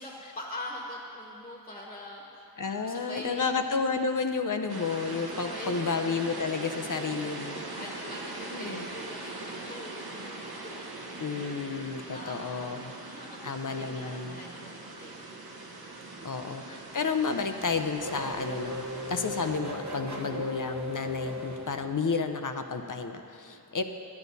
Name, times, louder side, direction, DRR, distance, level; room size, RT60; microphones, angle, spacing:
voice 1, 0.0-3.5 5.3-5.9 7.2-10.6 11.3-11.5 11.8-15.2 16.1-16.4 23.5-23.6, left 1 dB, 15° left, -2 dB, 1.3 m, -44 dB
voice 2, 2.6-7.6 8.5-8.9 11.2-12.9 13.4-14.4 16.2-18.8 19.1-23.8, left 5 dB, 55° left, 7 dB, 0.7 m, -31 dB
sound 1, 4.7-19.6, right 2 dB, 80° right, 1.0 m, -41 dB
Race car auto racing / Accelerating revving vroom, 16.8-22.4, left 1 dB, 50° right, 1.2 m, -38 dB
11.5 x 9.6 x 4.1 m, 2.6 s
wide cardioid pair, 60°, 37 cm